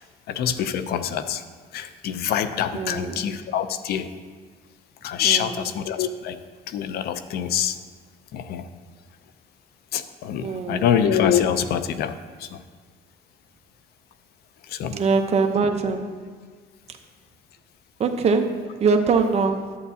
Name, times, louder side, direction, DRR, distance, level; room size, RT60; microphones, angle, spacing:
voice 1, 0.3-1.4 1.7-4.1 5.0-6.4 6.7-7.8 8.3-8.7 9.9-12.6 14.7-15.0, left 9 dB, 70° left, 0.6 m, -25 dB
voice 2, 2.7-3.2 5.2-5.6 10.4-10.9 14.9-16.1 18.0-19.8, right 4 dB, 40° right, 0.8 m, -23 dB
11.0 x 8.1 x 2.8 m
cardioid pair, 110°, 17 cm